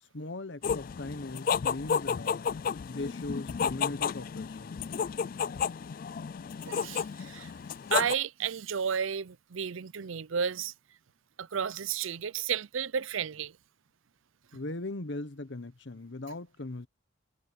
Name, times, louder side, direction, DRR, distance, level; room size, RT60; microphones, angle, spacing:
voice 1, 0.0-2.5 2.8-4.8 14.5-16.9, left 2 dB, 60° left, 1.1 m, -39 dB
sound 1, 0.6-8.1, left 6 dB, 45° left, 0.3 m, -32 dB
voice 2, 6.6-7.5 7.9-10.7 11.4-13.6, right 7 dB, 75° right, 0.6 m, -32 dB
head